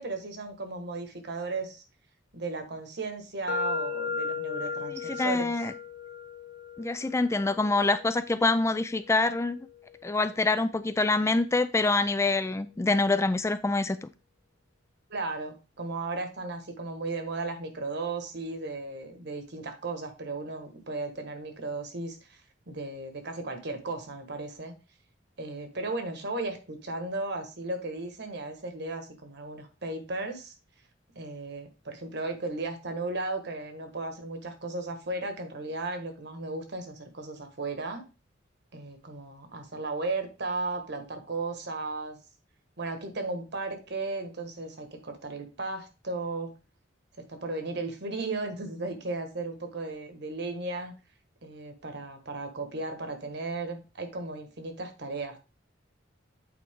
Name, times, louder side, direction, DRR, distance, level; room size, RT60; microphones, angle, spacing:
voice 1, 0.0-1.8 2.3-5.5 15.1-22.4 22.7-24.7 25.4-30.5 31.1-38.0 38.7-42.2 42.8-46.5 47.3-50.9 51.4-55.4, right 3 dB, 60° right, 1.5 m, -35 dB
sound 1, 3.5-11.3, left 4 dB, 65° left, 0.9 m, -37 dB
voice 2, 5.1-5.7 6.8-9.6 10.0-14.1, left 3 dB, 15° left, 0.3 m, -26 dB
8.4 x 4.5 x 3.7 m
head